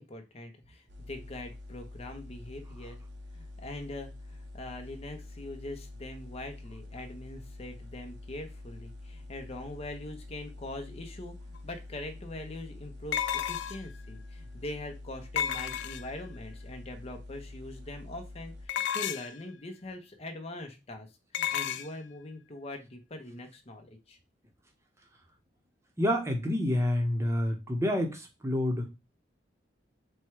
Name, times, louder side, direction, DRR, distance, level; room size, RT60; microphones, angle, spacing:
voice 1, 0.0-3.0 3.3-21.1 21.3-24.2, left 1 dB, 35° left, 5 dB, 0.8 m, -42 dB
sound 1, 0.9-18.7, left 2 dB, 65° right, 0.8 m, -46 dB
sound 2, 11.5-11.6 13.1-14.0 15.4-16.3 18.7-19.4 21.3-21.9, left 10 dB, 65° left, 0.3 m, -32 dB
voice 2, 26.0-28.9, left 1 dB, 15° right, 3 dB, 0.9 m, -28 dB
4.4 x 2.3 x 4.6 m, 0.26 s
head